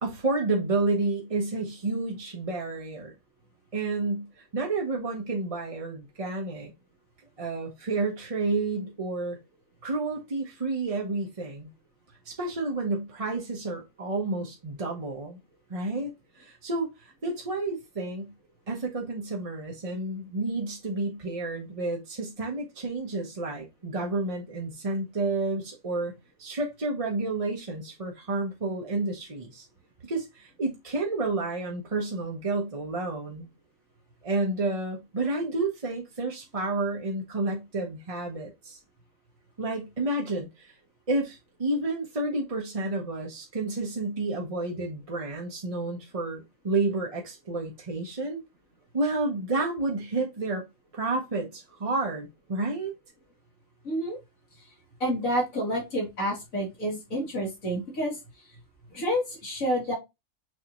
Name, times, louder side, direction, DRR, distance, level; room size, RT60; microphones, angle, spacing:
voice 1, 0.0-3.1 3.7-6.7 7.4-9.4 9.8-11.7 12.3-15.4 15.7-16.1 16.3-18.3 18.7-26.1 26.4-29.7 30.0-33.5 34.2-38.8 39.6-40.8 41.1-48.4 48.9-50.6 50.9-52.9, right 2 dB, 30° right, 0.8 m, -30 dB
voice 2, 53.8-54.2 55.0-58.2 58.9-59.9, equal, 75° left, 2.5 m, -29 dB
6.4 x 2.7 x 2.9 m
omnidirectional pair, 1.4 m